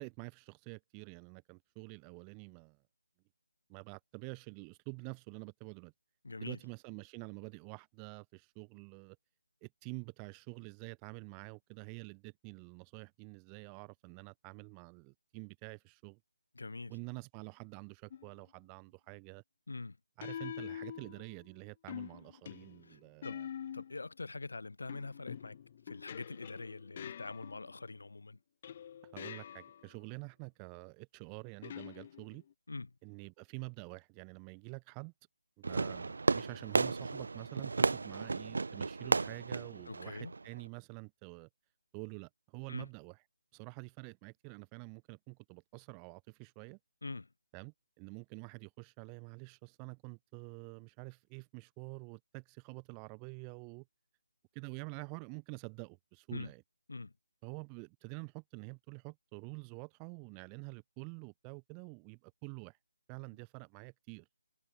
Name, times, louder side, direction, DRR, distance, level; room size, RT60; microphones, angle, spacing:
voice 1, 0.0-2.8 3.7-5.9 6.4-9.2 9.6-16.2 16.9-19.4 20.2-23.5 29.0-32.4 33.0-35.1 35.6-41.5 41.9-43.2 43.5-46.8 47.5-53.8 54.5-56.6 57.4-62.8 63.1-64.3, right 40 dB or more, 10° right, 2.7 m, -48 dB
voice 2, 6.2-6.6 16.5-17.0 19.7-20.0 22.8-23.4 23.7-25.6 25.8-28.4 32.7-32.9 39.9-40.3 42.7-42.9 47.0-47.3 56.3-56.5 56.9-57.1, left 3 dB, 75° left, 6.7 m, -44 dB
sound 1, 18.1-18.4 20.2-21.5 21.9-24.1 24.9-27.9 28.6-29.9 31.6-32.5, left 9 dB, 20° left, 0.5 m, -46 dB
Fireworks, 35.6-40.7, right 3 dB, 55° right, 0.6 m, -33 dB
hypercardioid pair, 180°, 0 cm